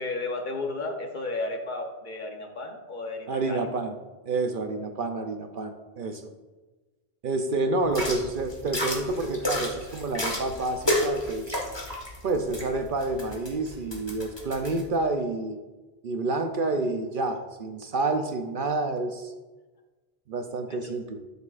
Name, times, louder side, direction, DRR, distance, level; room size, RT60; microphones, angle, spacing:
voice 1, 0.0-3.6 20.8-20.9, left 2 dB, 50° left, 4 dB, 1.0 m, -33 dB
voice 2, 3.3-3.9 4.3-6.3 7.2-11.6 12.2-15.6 16.0-19.3 20.3-21.2, right 2 dB, 55° right, 6 dB, 0.7 m, -29 dB
sound 1, 7.8-14.8, left 1 dB, 25° left, 1.6 m, -32 dB
12.5 x 6.8 x 2.5 m, 1.2 s
omnidirectional pair, 1.1 m